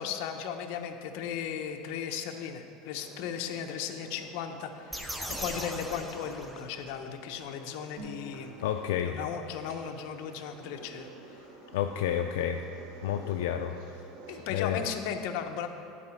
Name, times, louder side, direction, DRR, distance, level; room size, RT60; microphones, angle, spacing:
voice 1, 0.0-5.1 5.4-8.5 9.0-11.4 14.3-15.7, left 8 dB, 65° left, 5 dB, 0.8 m, -36 dB
sound 1, 2.9-14.9, right 3 dB, 70° right, 1.7 m, -51 dB
sound 2, 4.9-7.0, equal, 5° right, 0.6 m, -39 dB
sound 3, 8.0-11.6, right 2 dB, 55° right, 1.7 m, -51 dB
voice 2, 8.6-9.2 11.7-12.6 13.0-13.8 14.5-14.8, left 10 dB, 85° left, 5 dB, 0.4 m, -30 dB
11.5 x 4.9 x 7.0 m, 2.6 s
supercardioid pair, 150°, 0 cm